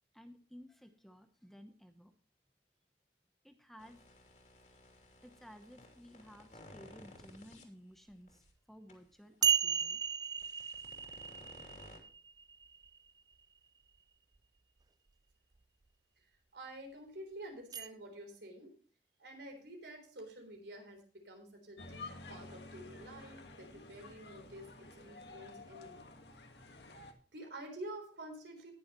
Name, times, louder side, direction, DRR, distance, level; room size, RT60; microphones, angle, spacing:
voice 1, 0.1-2.1 3.4-4.0 5.2-10.0, equal, ahead, 7 dB, 0.9 m, -55 dB
sound 1, 3.8-7.6 8.3-8.4 8.9-9.0 10.2-12.0, left 2 dB, 45° left, 2.9 m, -56 dB
sound 2, 8.5-8.6 9.4-13.1 17.7-17.9, right 8 dB, 20° right, 0.4 m, -34 dB
voice 2, 16.5-18.7 19.2-26.1 27.3-28.7, right 1 dB, 80° right, 4 dB, 3.8 m, -49 dB
sound 3, 21.8-27.1, left 3 dB, 75° left, 1.7 m, -51 dB
19.0 x 7.1 x 3.1 m, 0.42 s
head